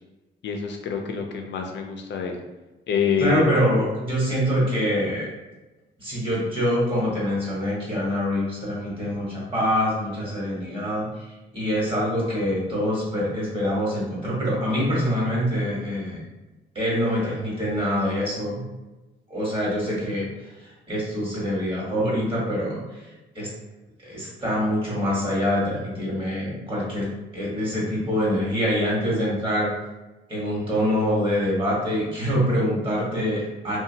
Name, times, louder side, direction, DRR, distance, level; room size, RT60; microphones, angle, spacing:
voice 1, 0.4-2.4 2.9-3.5, left 6 dB, 65° left, 3 dB, 0.6 m, -26 dB
voice 2, 3.2-5.3 6.0-16.2 16.7-18.6 19.3-20.2 20.6-23.1 23.3-23.5 24.0-27.1 27.3-29.7 30.3-33.8, equal, 25° right, -6 dB, 1.3 m, -25 dB
2.7 x 2.3 x 2.7 m, 1.1 s
cardioid pair, 90°, 20 cm